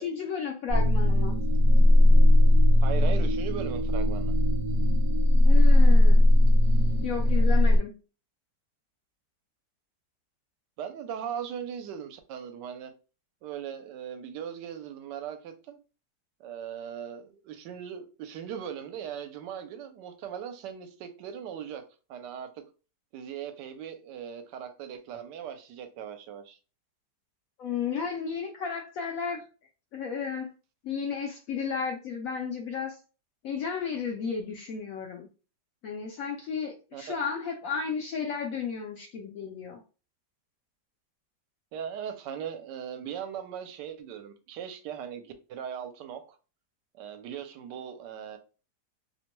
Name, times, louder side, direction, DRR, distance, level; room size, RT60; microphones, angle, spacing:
voice 1, 0.0-1.4 5.4-6.2 7.0-7.9 27.6-29.4 29.9-30.5 30.8-33.0 33.4-35.3 35.8-39.8, left 6 dB, 75° left, 0.8 m, -33 dB
sound 1, 0.7-7.8, left 1 dB, 60° right, 1.0 m, -19 dB
voice 2, 2.8-4.3 10.8-12.9 13.4-15.8 16.4-21.8 22.1-22.5 23.1-26.6 36.9-37.0 41.7-46.4 47.0-48.4, right 8 dB, 80° right, 1.2 m, -39 dB
2.9 x 2.1 x 2.9 m
omnidirectional pair, 1.9 m